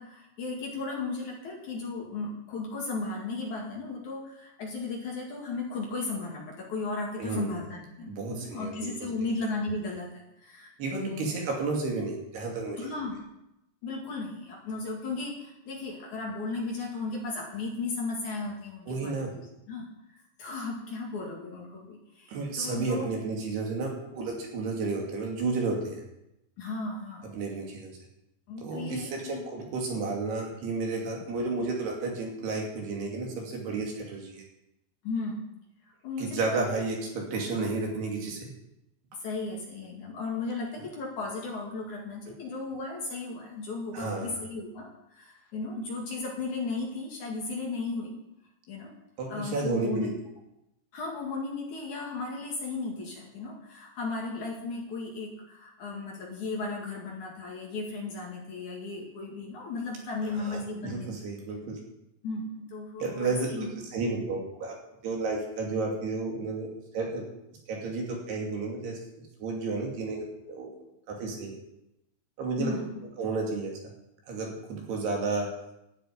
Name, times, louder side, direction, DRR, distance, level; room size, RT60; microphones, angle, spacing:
voice 1, 0.0-11.3 12.8-13.1 13.8-19.2 19.7-23.1 26.6-27.3 28.5-29.4 35.0-35.4 36.0-36.8 39.2-48.1 48.7-48.9 49.3-50.1 50.9-61.2 62.2-63.7 72.6-72.9, left 3 dB, 50° left, -1 dB, 3.0 m, -35 dB
voice 2, 7.2-7.5 8.1-8.9 10.8-12.9 18.9-19.3 22.3-26.0 27.3-27.9 28.6-34.4 36.2-38.5 43.9-44.4 49.2-50.1 60.3-61.8 63.0-64.8 65.0-67.3 67.7-69.0 69.4-70.7 71.1-71.6 72.4-72.7 73.2-73.7 74.3-75.5, right 3 dB, 70° right, 0 dB, 4.6 m, -32 dB
13.0 x 6.9 x 9.6 m, 0.86 s
omnidirectional pair, 5.0 m